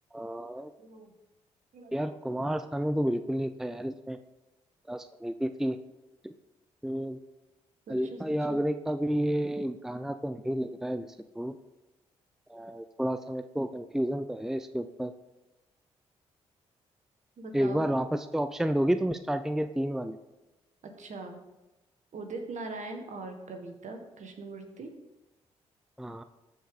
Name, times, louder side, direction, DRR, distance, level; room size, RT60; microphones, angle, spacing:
voice 1, 0.1-0.7 1.9-4.2 4.9-5.8 6.2-6.3 6.8-7.2 7.9-11.1 11.4-11.6 12.5-15.1 17.5-20.2 26.0-26.2, equal, 5° right, 10 dB, 0.5 m, -30 dB
voice 2, 0.8-1.1 1.7-2.1 7.9-8.2 8.5-8.6 17.4-17.9 20.8-21.4 22.1-24.9, right 3 dB, 60° right, 5 dB, 1.7 m, -41 dB
14.0 x 5.1 x 3.9 m, 1.0 s
hypercardioid pair, 45°, 14 cm